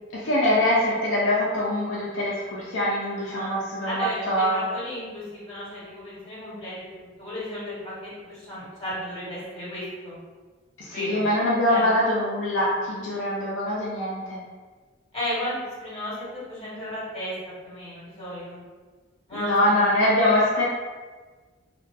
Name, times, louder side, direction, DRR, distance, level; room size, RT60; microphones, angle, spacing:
voice 1, 0.1-4.6 10.8-14.4 19.3-20.6, left 1 dB, 70° left, -6 dB, 0.4 m, -23 dB
voice 2, 3.2-3.6 3.8-10.2 10.9-11.2 11.7-11.9 15.1-17.3 17.6-18.6 19.3-19.8, left 1 dB, 30° left, -10 dB, 1.2 m, -34 dB
2.3 x 2.2 x 2.5 m, 1.4 s
head